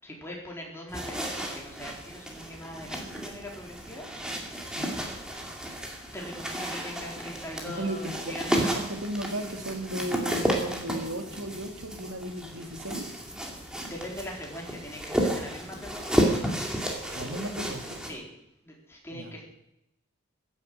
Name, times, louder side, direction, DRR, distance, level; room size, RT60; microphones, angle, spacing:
voice 1, 0.0-4.1 6.1-8.8 13.9-16.6 18.0-19.4, left 1 dB, 10° left, -2 dB, 4.0 m, -42 dB
sound 1, 0.9-18.1, right 1 dB, 5° right, 2.4 m, -32 dB
voice 2, 7.7-13.1 17.1-18.0 19.1-19.3, right 1 dB, 75° right, 5 dB, 2.3 m, -35 dB
16.0 x 9.7 x 7.8 m, 0.85 s
head